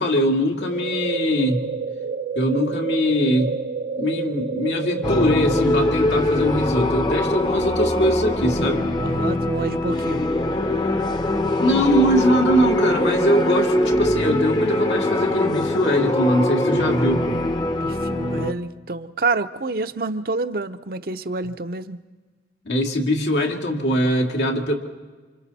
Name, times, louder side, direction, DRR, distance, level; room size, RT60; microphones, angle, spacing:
voice 1, 0.0-1.6 2.3-3.6 4.0-8.9 11.6-17.4 22.7-24.7, equal, 85° left, 2.3 m, -22 dB
sound 1, 0.6-5.6, right 5 dB, 85° right, 0.8 m, -29 dB
sound 2, 5.0-18.5, left 1 dB, 25° left, 0.7 m, -22 dB
voice 2, 9.0-10.2 17.8-22.0, right 3 dB, 55° right, 0.7 m, -27 dB
28.5 x 26.5 x 4.2 m
head